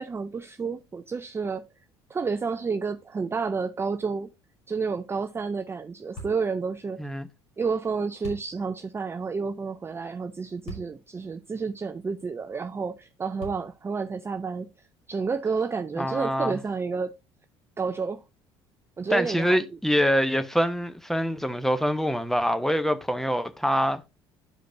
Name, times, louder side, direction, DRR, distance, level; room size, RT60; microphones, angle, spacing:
voice 1, 0.0-1.7 2.1-4.3 4.7-7.0 7.6-14.7 15.1-17.2 17.8-18.2 19.0-19.6, right 5 dB, 20° right, 0.4 m, -30 dB
sound 1, 6.2-6.5 8.2-8.5 10.7-11.0 11.6-11.7 13.4-13.9, right 1 dB, 55° left, 4.3 m, -40 dB
voice 2, 16.0-16.6 19.1-24.1, equal, 5° left, 0.9 m, -25 dB
11.5 x 5.0 x 2.6 m
figure-of-eight pair, 60°, 14 cm